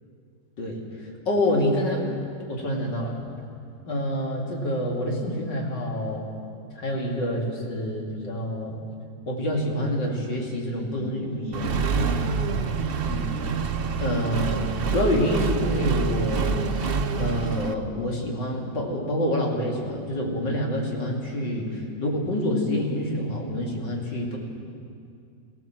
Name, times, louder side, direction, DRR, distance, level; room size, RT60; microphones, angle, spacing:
voice 1, 1.3-2.2 2.5-3.2 3.9-6.2 6.8-8.8 9.3-11.8 13.1-13.3 14.0-24.4, left 1 dB, 90° left, -1 dB, 3.3 m, -27 dB
Accelerating revving vroom, 11.5-17.7, right 5 dB, 45° right, 0.7 m, -26 dB
23.0 x 16.0 x 7.6 m, 2.4 s
omnidirectional pair, 1.9 m